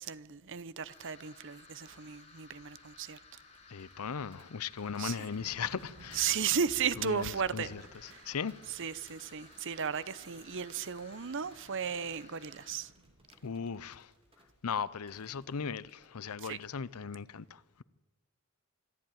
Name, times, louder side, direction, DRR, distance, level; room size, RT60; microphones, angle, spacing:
voice 1, 0.0-3.2 5.0-5.3 6.1-7.7 8.1-8.3 8.7-12.9 16.4-16.6, right 7 dB, 60° right, 0.8 m, -35 dB
sound 1, 0.9-12.7, left 4 dB, 30° left, 4.4 m, -58 dB
sound 2, 1.8-16.8, right 1 dB, 25° right, 2.9 m, -65 dB
sound 3, 2.8-3.7 3.9-13.5, right 1 dB, 85° right, 1.9 m, -58 dB
voice 2, 3.7-6.4 7.0-8.6 13.4-14.1 14.6-17.8, left 6 dB, 80° left, 0.6 m, -38 dB
25.5 x 11.5 x 9.3 m
head